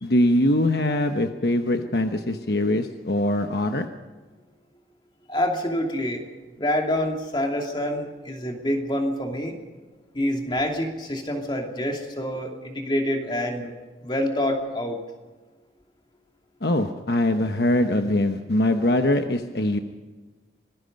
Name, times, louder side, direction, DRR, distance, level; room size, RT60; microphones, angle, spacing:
voice 1, 0.0-3.9 16.6-19.8, left 1 dB, 60° left, 6 dB, 1.1 m, -22 dB
voice 2, 5.3-6.2 6.6-9.6 10.1-13.7 14.0-15.0, left 1 dB, 25° left, 2 dB, 2.7 m, -26 dB
25.5 x 19.5 x 5.4 m, 1.3 s
head